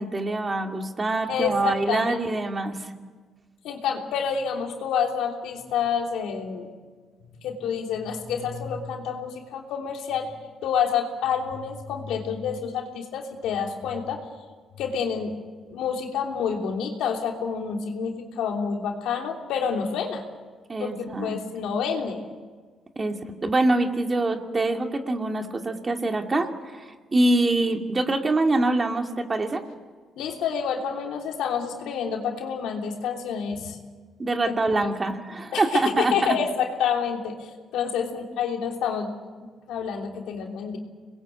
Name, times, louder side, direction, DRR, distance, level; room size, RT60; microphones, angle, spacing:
voice 1, 0.0-2.9 20.7-21.4 23.0-23.2 23.4-26.5 26.7-26.8 27.1-29.6 34.2-36.4, right 2 dB, 30° right, 4 dB, 2.5 m, -24 dB
voice 2, 1.3-2.2 3.6-6.7 7.4-14.2 14.8-15.3 15.7-20.2 20.8-22.2 30.2-33.8 34.4-34.9 35.5-39.1 39.7-40.8, left 7 dB, 85° left, 2 dB, 3.2 m, -28 dB
26.5 x 21.0 x 8.4 m, 1.5 s
cardioid pair, 90°, 0 cm